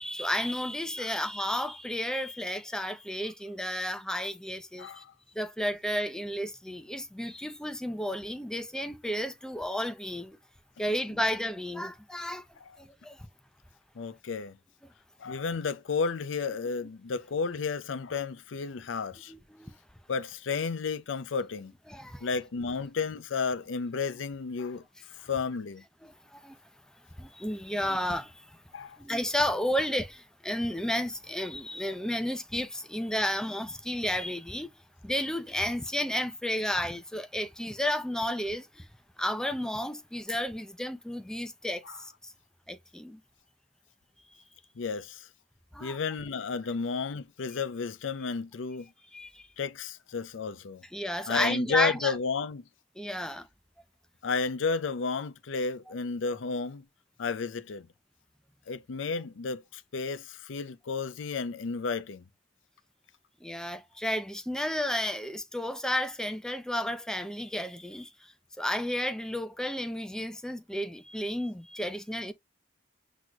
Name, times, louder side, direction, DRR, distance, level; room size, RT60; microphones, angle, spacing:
voice 1, 0.0-5.0 5.3-10.4 10.8-12.5 12.8-13.2 19.3-19.8 21.9-22.3 26.0-26.6 27.2-28.6 29.0-34.7 35.0-38.9 39.2-42.3 42.7-43.2 45.7-46.0 49.1-49.5 50.9-52.2 53.0-53.5 63.4-72.3, left 1 dB, 5° left, 0.5 m, -32 dB
voice 2, 4.8-5.1 12.7-12.8 14.0-14.6 15.2-19.3 20.1-21.7 22.2-24.8 25.2-25.8 28.7-29.0 41.8-42.0 44.8-45.3 45.8-48.9 49.6-50.8 51.3-52.6 54.2-56.8 57.2-57.9 58.7-62.2, left 5 dB, 80° left, 0.5 m, -32 dB
6.1 x 3.0 x 2.3 m
head